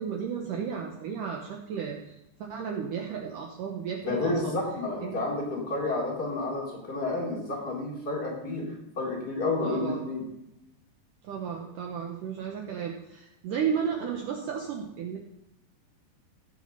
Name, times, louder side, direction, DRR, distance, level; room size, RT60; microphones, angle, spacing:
voice 1, 0.0-2.1 2.4-4.5 5.0-5.2 9.6-10.1 11.2-15.2, right 7 dB, 75° right, 0 dB, 2.0 m, -33 dB
voice 2, 4.0-8.7 9.0-10.2, left 2 dB, 25° left, -4 dB, 4.0 m, -30 dB
17.0 x 6.3 x 5.4 m, 0.86 s
omnidirectional pair, 4.9 m